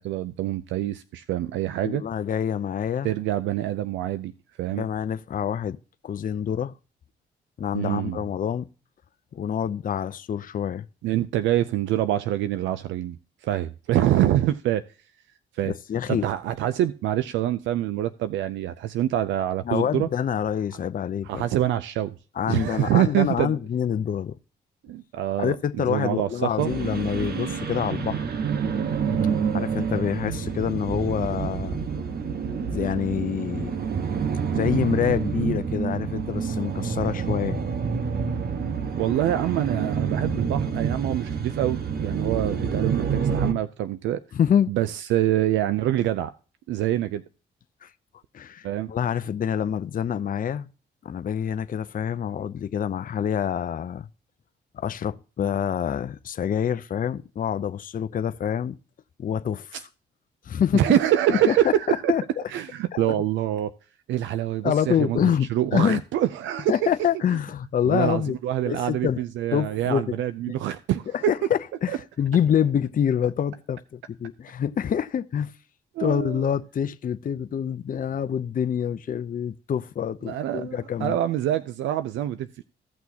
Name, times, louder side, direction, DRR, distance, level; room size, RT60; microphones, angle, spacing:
voice 1, 0.0-2.0 3.0-4.3 4.6-4.8 7.7-8.2 11.0-13.2 13.4-14.8 15.5-15.7 16.1-20.1 21.2-22.1 22.5-23.6 24.8-26.7 29.1-29.4 39.0-44.2 44.7-46.3 46.7-47.2 48.6-48.9 59.7-59.8 60.7-62.1 62.5-63.7 64.1-66.8 67.9-71.3 71.9-72.0 76.0-76.4 80.3-82.6, right 12 dB, 80° right, 0.5 m, -25 dB
voice 2, 1.8-3.1 4.7-5.8 6.0-6.7 7.6-8.6 9.3-10.9 15.6-16.2 19.6-21.5 22.4-24.4 25.4-28.3 29.5-31.8 32.7-33.7 34.5-37.6 44.3-44.7 47.8-47.9 48.3-50.7 51.0-54.1 54.7-58.8 59.2-59.8 60.4-61.0 61.3-62.2 62.9-63.1 64.6-66.0 66.7-68.4 68.7-69.2 69.5-70.2 71.3-75.5 76.0-81.2, left 8 dB, 45° left, 0.6 m, -26 dB
sound 1, 26.6-43.5, right 6 dB, 55° right, 1.3 m, -28 dB
16.0 x 6.1 x 2.8 m
supercardioid pair, 65°, 19 cm